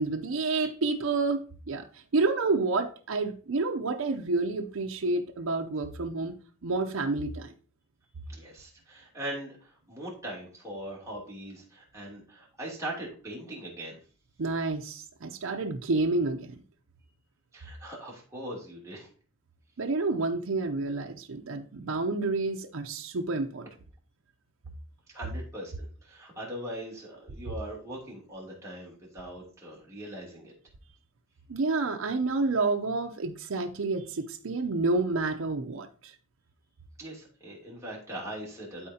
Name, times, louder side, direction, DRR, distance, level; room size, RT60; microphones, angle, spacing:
voice 1, 0.0-1.8 2.1-6.3 6.6-7.5 14.4-16.6 19.8-23.7 31.5-36.1, right 3 dB, 75° right, 3 dB, 0.6 m, -29 dB
voice 2, 8.3-14.0 17.5-19.1 25.1-30.5 37.0-38.9, right 1 dB, 15° right, -5 dB, 2.8 m, -40 dB
12.0 x 4.3 x 2.8 m, 0.40 s
head